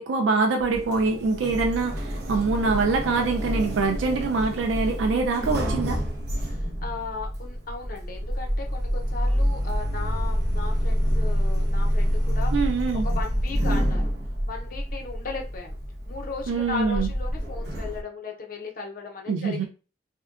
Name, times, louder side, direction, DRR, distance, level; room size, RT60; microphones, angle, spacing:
voice 1, 0.0-6.0 12.5-13.1 16.5-17.1 19.3-19.7, right 4 dB, 85° right, 3 dB, 0.4 m, -24 dB
Sliding door, 0.6-18.0, equal, 60° right, 0.8 m, -27 dB
voice 2, 6.4-12.5 13.0-14.0 14.5-15.8 16.0-19.7, left 4 dB, 50° left, 2 dB, 0.6 m, -36 dB
3.6 x 2.2 x 2.4 m, 0.35 s
head